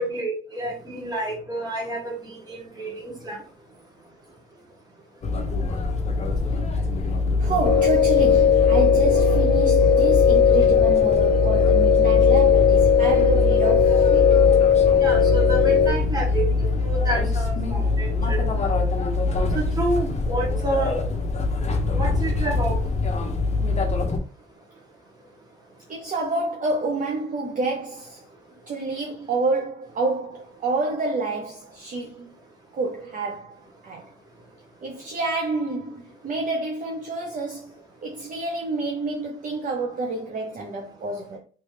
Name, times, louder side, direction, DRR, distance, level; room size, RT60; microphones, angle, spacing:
voice 1, 0.0-3.4 15.0-16.5 16.8-18.4 19.5-21.0 21.9-22.8, right 2 dB, 20° right, 1.8 m, -29 dB
sound 1, 5.2-24.2, left 3 dB, 35° left, 0.9 m, -23 dB
voice 2, 7.4-14.4 25.9-28.3 28.7-32.3 32.7-33.6 33.8-34.1 34.8-37.7 38.0-41.4, right 3 dB, 40° right, 0.7 m, -28 dB
sound 2, 7.6-15.9, left 7 dB, 50° left, 0.7 m, -18 dB
3.3 x 3.1 x 3.3 m
cardioid pair, 90°, 20 cm